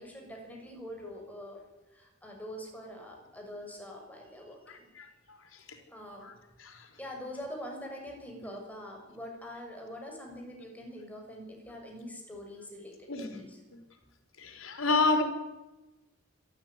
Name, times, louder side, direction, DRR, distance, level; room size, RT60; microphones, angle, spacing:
voice 1, 0.0-1.6 1.9-4.9 5.9-6.3 6.7-13.6, equal, 10° left, 1 dB, 6.6 m, -44 dB
voice 2, 4.7-5.8 6.2-6.3 6.6-6.9 13.1-13.4 14.4-15.2, left 3 dB, 85° left, 5 dB, 4.4 m, -30 dB
26.5 x 13.5 x 9.7 m, 1.1 s
head